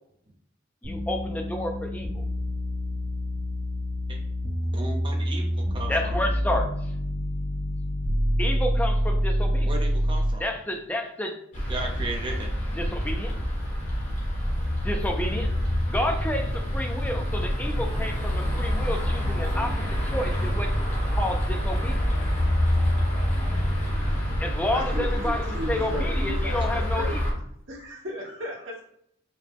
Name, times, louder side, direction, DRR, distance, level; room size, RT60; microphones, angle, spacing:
voice 1, 0.8-2.2 5.9-6.9 8.4-9.7 10.4-11.4 12.8-13.3 14.8-15.5 15.9-19.8 20.1-20.7 21.1-22.1 24.4-27.2, left 1 dB, 10° left, 3 dB, 0.4 m, -30 dB
sound 1, 0.8-10.4, equal, 40° right, 1.1 m, -27 dB
voice 2, 4.7-6.2 9.6-10.5 11.7-12.6 26.6-26.7, right 2 dB, 25° right, 0 dB, 0.7 m, -35 dB
sound 2, 11.5-27.3, equal, 30° left, 1.2 m, -26 dB
voice 3, 24.7-27.2 27.7-28.8, equal, 65° right, -5 dB, 1.6 m, -36 dB
4.8 x 2.2 x 3.4 m, 0.71 s
head